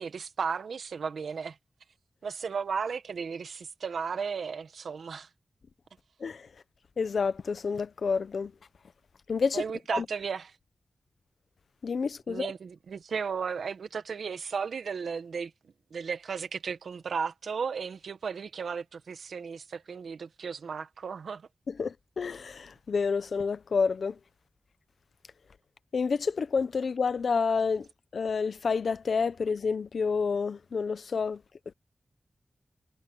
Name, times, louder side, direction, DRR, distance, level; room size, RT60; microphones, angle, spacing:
voice 1, 0.0-1.6 2.2-5.3 9.5-10.5 12.3-15.5 15.9-21.5, right 6 dB, 90° right, 1.6 m, -34 dB
voice 2, 7.0-8.5 9.3-9.6 9.9-10.0 11.8-12.5 21.7-24.2 25.9-27.9 28.1-31.4, left 5 dB, 75° left, 0.9 m, -29 dB
cardioid pair, 65°, 0 cm